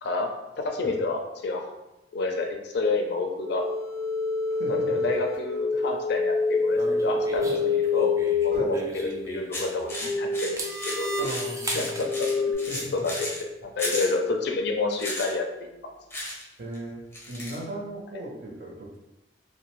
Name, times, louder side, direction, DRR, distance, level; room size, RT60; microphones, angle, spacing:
voice 1, 0.6-1.7 2.1-3.6 4.7-7.6 7.9-11.1 11.7-13.3 13.6-15.9, left 3 dB, 65° left, 3 dB, 0.4 m, -29 dB
sound 1, 3.4-12.5, left 3 dB, 85° right, 1.1 m, -27 dB
voice 2, 4.5-5.0 7.4-7.5 8.5-8.7 11.2-11.9 12.7-13.1 16.6-19.0, right 1 dB, 60° right, -3 dB, 0.6 m, -37 dB
sound 2, 6.7-10.0 10.4-12.1, right 2 dB, 20° right, 0.3 m, -37 dB
sound 3, 9.5-13.4 13.8-14.1 14.9-15.3 16.1-16.4 16.7-16.8 17.1-17.6, left 1 dB, 15° left, 0.6 m, -34 dB
2.5 x 2.1 x 3.0 m, 1.0 s
head